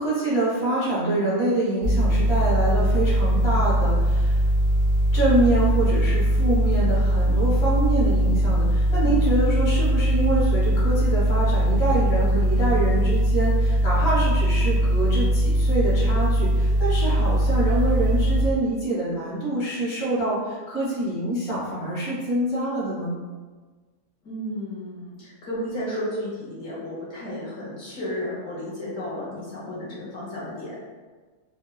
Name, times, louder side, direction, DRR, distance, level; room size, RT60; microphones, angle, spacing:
voice 1, 0.0-4.4 5.1-23.1, right 2 dB, 40° left, -8 dB, 0.9 m, -25 dB
sound 1, 1.8-18.5, equal, 60° right, 0.5 m, -21 dB
voice 2, 8.9-9.3 24.2-30.8, left 1 dB, 65° left, -8 dB, 1.2 m, -33 dB
3.0 x 2.1 x 2.2 m, 1.4 s
omnidirectional pair, 1.5 m